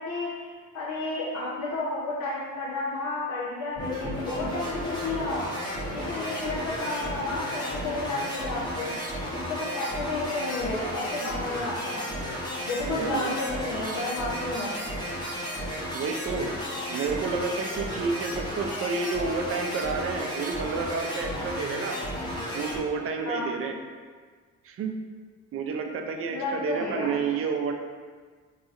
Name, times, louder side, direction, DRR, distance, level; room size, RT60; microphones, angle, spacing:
voice 1, 0.0-5.5 5.9-8.9 9.3-12.1 12.7-14.8 23.2-23.5 26.3-27.2, left 2 dB, 70° left, -6 dB, 0.7 m, -32 dB
sound 1, 3.8-22.8, equal, 15° left, 0.9 m, -33 dB
voice 2, 12.9-13.3 15.9-16.5 16.9-22.0 22.5-23.7 24.6-25.0 25.5-27.7, right 4 dB, 50° right, 3 dB, 0.5 m, -30 dB
4.0 x 2.8 x 2.5 m, 1.5 s
cardioid pair, 90°, 30 cm